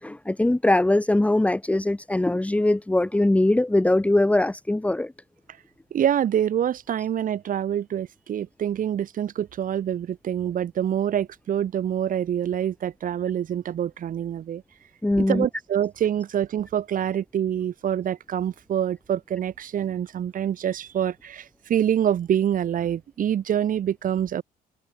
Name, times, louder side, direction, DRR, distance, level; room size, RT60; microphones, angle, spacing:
voice 1, 0.0-5.1 15.0-15.5, left 1 dB, 10° left, 1.8 m, -21 dB
voice 2, 5.9-14.6 15.3-24.4, right 9 dB, 55° right, 6.1 m, -26 dB
cardioid pair, 110°, 17 cm